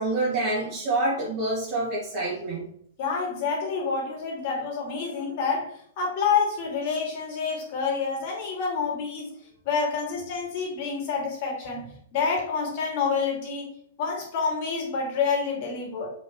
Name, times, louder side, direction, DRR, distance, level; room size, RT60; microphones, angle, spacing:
voice 1, 0.0-2.7, right 2 dB, 40° right, -9 dB, 3.1 m, -27 dB
voice 2, 3.0-9.3 9.6-13.7 14.0-16.1, left 5 dB, 45° left, 0 dB, 2.9 m, -28 dB
6.9 x 6.2 x 3.3 m, 0.64 s
figure-of-eight pair, 105°, 0 cm